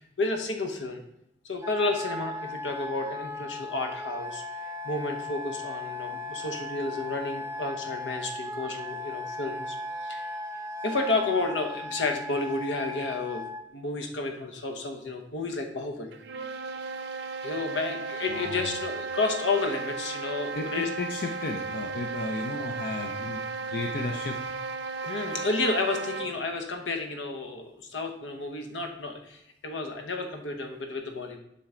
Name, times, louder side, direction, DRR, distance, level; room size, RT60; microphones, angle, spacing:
voice 1, 0.2-1.0 1.4-4.4 4.8-10.3 10.8-13.4 13.7-16.1 17.4-20.9 25.0-31.4, left 3 dB, 75° left, 4 dB, 1.0 m, -31 dB
Wind instrument woodwind instrument, 1.6-13.6, left 2 dB, 15° right, 0.5 m, -37 dB
sound 1, 16.1-26.4, right 4 dB, 65° right, 0.6 m, -35 dB
voice 2, 18.3-18.7 20.5-24.4, left 2 dB, 55° left, 3 dB, 0.6 m, -34 dB
7.5 x 5.7 x 3.8 m, 0.79 s
head